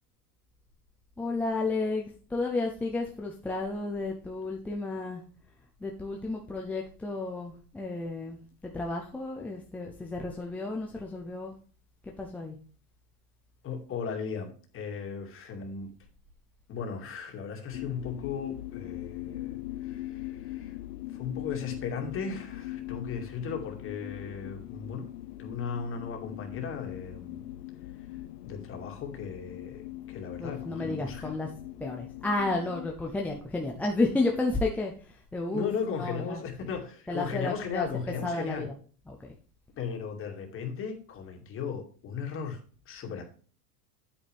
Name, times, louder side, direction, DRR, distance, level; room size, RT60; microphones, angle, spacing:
voice 1, 1.2-5.2 5.8-11.5 12.0-12.6 30.4-31.5 31.8-36.7 37.1-38.8 39.1-39.3, left 2 dB, 5° left, -1 dB, 0.4 m, -32 dB
voice 2, 13.6-15.9 16.7-20.7 21.1-25.1 25.4-27.4 28.4-31.3 35.5-38.7 39.8-42.6 42.9-43.2, left 6 dB, 25° left, 3 dB, 2.2 m, -36 dB
sound 1, 17.7-32.9, left 15 dB, 80° left, 0.7 m, -41 dB
9.0 x 8.8 x 3.4 m, 0.40 s
supercardioid pair, 145°, 47 cm